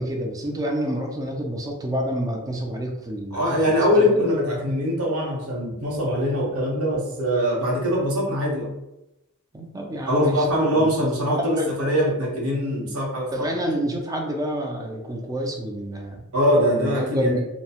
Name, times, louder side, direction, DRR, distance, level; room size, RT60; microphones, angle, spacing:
voice 1, 0.0-4.2 9.5-10.4 10.8-10.9 11.2-11.7 13.3-16.2 16.7-17.4, equal, 15° right, 1 dB, 0.4 m, -28 dB
voice 2, 3.3-8.7 10.1-13.5 16.3-17.4, equal, 80° right, -3 dB, 0.9 m, -22 dB
2.6 x 2.0 x 2.8 m, 0.91 s
head